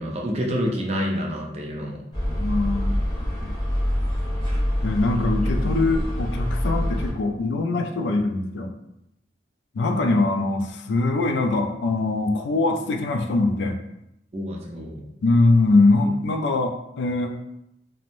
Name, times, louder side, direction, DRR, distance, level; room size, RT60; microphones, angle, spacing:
voice 1, 0.0-2.0 5.1-5.3 14.3-15.1, equal, 35° right, 0 dB, 0.4 m, -28 dB
sound 1, 2.1-7.1, equal, 25° left, 0.9 m, -25 dB
voice 2, 2.4-3.0 3.4-3.5 4.8-8.7 9.7-13.8 15.2-17.4, left 2 dB, 70° left, 4 dB, 0.3 m, -22 dB
3.0 x 2.1 x 2.5 m, 0.83 s
head